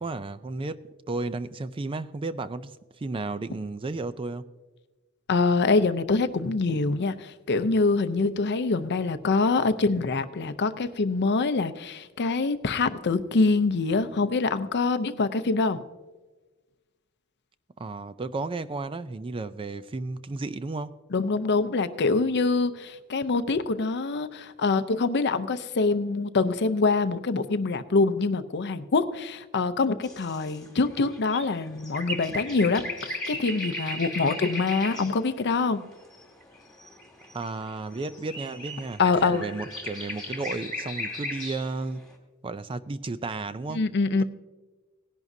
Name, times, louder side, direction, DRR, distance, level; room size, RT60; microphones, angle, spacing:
voice 1, 0.0-4.5 17.8-20.9 37.3-42.0 42.4-43.8, right 3 dB, 25° right, 13 dB, 0.4 m, -33 dB
voice 2, 5.3-15.8 21.1-35.8 39.0-39.4 43.7-44.2, left 3 dB, 50° left, 11 dB, 0.6 m, -25 dB
sound 1, 30.0-35.3 35.6-42.1, left 1 dB, 5° left, 2.1 m, -37 dB
18.5 x 11.0 x 2.7 m, 1.3 s
head